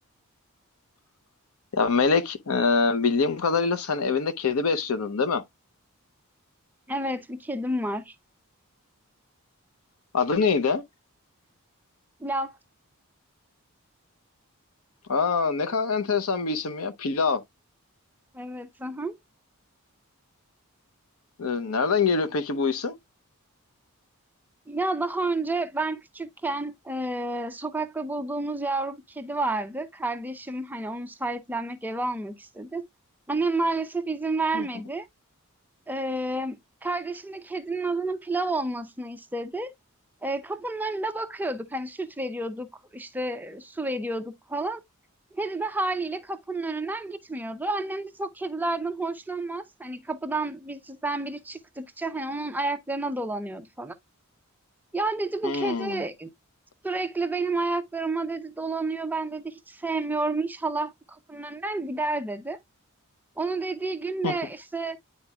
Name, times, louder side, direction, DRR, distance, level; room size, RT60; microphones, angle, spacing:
voice 1, 1.7-5.4 10.1-10.8 15.1-17.4 21.4-23.0 34.5-34.7 55.4-56.0 64.2-64.3, left 4 dB, 75° left, 0.7 m, -24 dB
voice 2, 6.9-8.1 12.2-12.6 18.3-19.1 24.7-32.8 33.3-35.1 35.9-39.7 40.2-42.7 42.9-44.8 45.3-53.9 54.9-56.3 56.8-62.6 63.4-65.0, right 2 dB, 10° right, 0.5 m, -30 dB
9.9 x 4.2 x 2.3 m
head